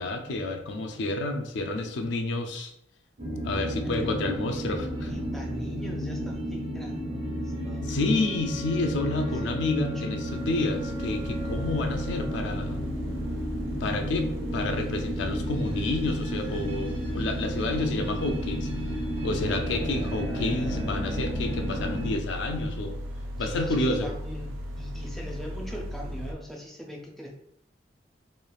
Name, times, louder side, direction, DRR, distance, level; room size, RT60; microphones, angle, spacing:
voice 1, 0.0-2.7 3.4-5.1 7.8-12.8 13.8-18.7 19.2-23.0 23.4-24.1, left 2 dB, 70° left, 5 dB, 0.4 m, -29 dB
sound 1, 3.2-22.2, equal, 75° right, 1.2 m, -33 dB
voice 2, 3.7-4.1 4.4-4.7 5.0-8.0 9.0-10.2 19.3-19.5 23.4-27.3, equal, ahead, -1 dB, 0.4 m, -41 dB
sound 2, 6.0-14.0, right 1 dB, 45° right, 0.9 m, -47 dB
sound 3, 10.2-26.3, equal, 90° right, 0.4 m, -37 dB
3.1 x 2.3 x 2.3 m, 0.75 s
head